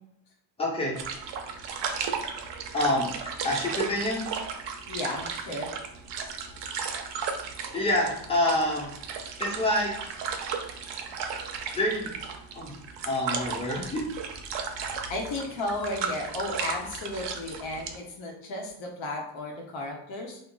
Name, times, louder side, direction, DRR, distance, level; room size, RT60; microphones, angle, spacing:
voice 1, 0.6-1.0 2.7-3.1 3.4-4.2 7.7-8.9 9.4-10.1 11.7-12.1 12.5-12.7 13.0-14.0, left 1 dB, 10° left, -3 dB, 0.9 m, -27 dB
sound 1, 0.9-18.0, right 6 dB, 60° right, 0.6 m, -35 dB
voice 2, 4.9-5.7 13.8-13.9 14.7-20.4, left 2 dB, 75° left, 0 dB, 0.8 m, -34 dB
2.4 x 2.1 x 3.7 m, 0.78 s
cardioid pair, 90°, 48 cm